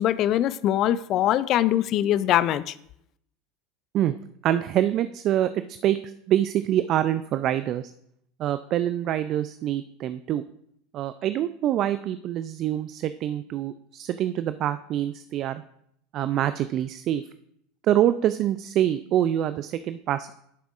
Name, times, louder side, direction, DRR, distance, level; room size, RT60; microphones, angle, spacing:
voice 1, 0.0-2.7, left 12 dB, 50° left, 0.3 m, -22 dB
voice 2, 4.4-5.5 5.8-6.0 6.3-7.9 8.4-10.4 10.9-15.6 16.1-17.2 17.9-20.3, right 11 dB, 50° right, 0.3 m, -25 dB
12.0 x 6.8 x 2.5 m
hypercardioid pair, 80°, 0 cm